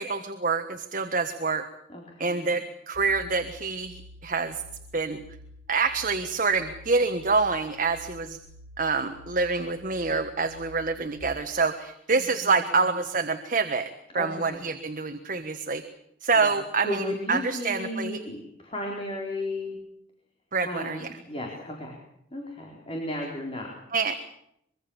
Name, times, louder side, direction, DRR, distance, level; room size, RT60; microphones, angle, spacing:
voice 1, 0.0-1.6 2.2-4.6 4.9-5.2 5.7-8.4 8.8-15.8 16.2-18.2 20.5-21.1 23.9-24.2, right 4 dB, 45° right, 7 dB, 1.5 m, -27 dB
voice 2, 1.9-2.5 12.2-12.6 14.1-14.7 16.3-16.5 16.8-19.8 20.6-22.0 22.3-23.8, left 1 dB, 30° left, -1 dB, 4.2 m, -34 dB
sound 1, 2.9-11.2, left 1 dB, 75° left, 5.2 m, -49 dB
24.5 x 23.0 x 7.2 m, 0.75 s
head